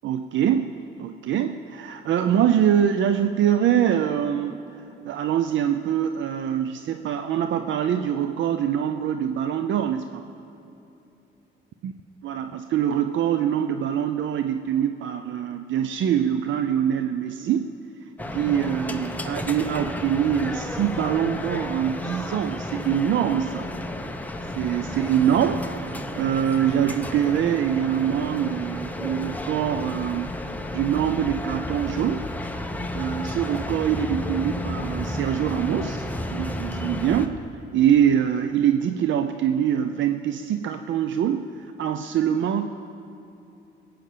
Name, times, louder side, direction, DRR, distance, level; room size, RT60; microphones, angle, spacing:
voice 1, 0.0-0.7 1.0-4.6 5.0-10.2 11.8-11.9 12.2-17.7 18.3-23.7 24.5-30.3 30.7-32.3 32.7-37.4 37.7-42.7, right 9 dB, 70° right, 8 dB, 0.6 m, -24 dB
sound 1, 18.2-37.3, left 1 dB, 10° left, 1.0 m, -32 dB
21.0 x 8.9 x 6.7 m, 2.9 s
cardioid pair, 90°, 20 cm